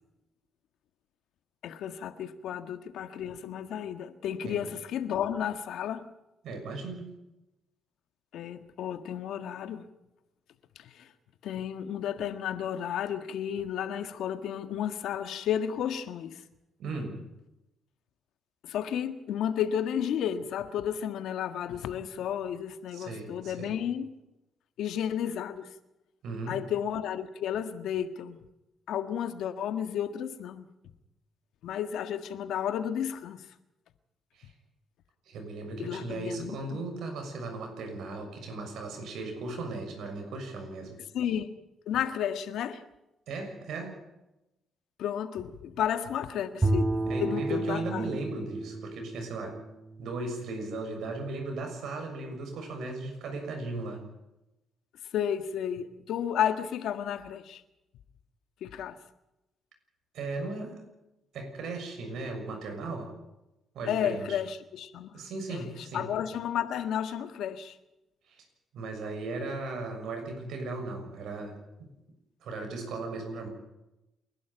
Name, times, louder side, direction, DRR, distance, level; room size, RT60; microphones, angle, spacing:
voice 1, 1.6-6.0 8.3-9.9 10.7-11.1 11.4-16.4 18.6-24.1 24.8-25.7 26.5-28.4 28.9-30.6 31.6-33.4 35.8-36.8 41.1-41.5 41.9-42.8 45.0-48.1 55.1-57.6 58.6-59.0 63.9-65.2 65.5-67.8, left 9 dB, 80° left, 9 dB, 1.6 m, -32 dB
voice 2, 6.4-7.1 16.8-17.2 22.9-23.8 26.2-26.6 34.3-34.5 35.3-41.0 43.3-44.0 47.1-49.6 50.0-54.0 60.1-60.8 61.3-63.1 63.7-64.4 65.1-66.1 68.3-68.4 68.7-71.9 72.4-73.5, right 3 dB, 75° right, 5 dB, 6.6 m, -37 dB
Bowed string instrument, 46.6-50.9, right 2 dB, 20° right, 1.9 m, -32 dB
28.5 x 11.5 x 9.2 m, 0.93 s
cardioid pair, 90°, 0 cm